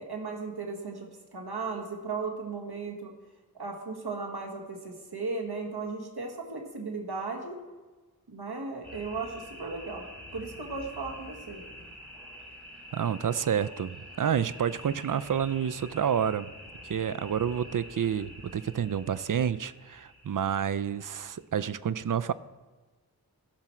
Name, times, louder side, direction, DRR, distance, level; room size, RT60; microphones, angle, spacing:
voice 1, 0.0-3.1 3.6-7.6 8.3-11.7, right 4 dB, 80° right, 2 dB, 1.6 m, -36 dB
sound 1, 8.8-21.4, equal, 80° left, 3.3 m, -47 dB
voice 2, 12.9-16.5 16.9-22.3, right 8 dB, 55° right, 15 dB, 0.4 m, -29 dB
14.5 x 6.0 x 4.4 m, 1.3 s
wide cardioid pair, 50°, 38 cm